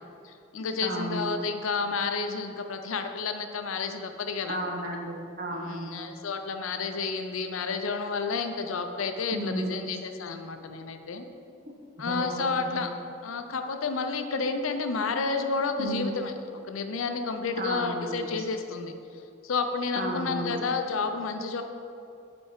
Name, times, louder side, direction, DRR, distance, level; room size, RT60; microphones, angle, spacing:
voice 1, 0.2-4.6 5.6-11.2 12.0-12.9 13.2-16.3 16.7-18.9 19.4-21.6, left 4 dB, 80° left, 6 dB, 0.6 m, -30 dB
voice 2, 0.8-1.2 4.5-6.0 9.3-9.9 12.0-12.8 15.8-16.2 17.6-18.4 19.9-20.6, right 1 dB, 45° right, 1 dB, 0.9 m, -33 dB
8.8 x 4.3 x 4.8 m, 2.5 s
head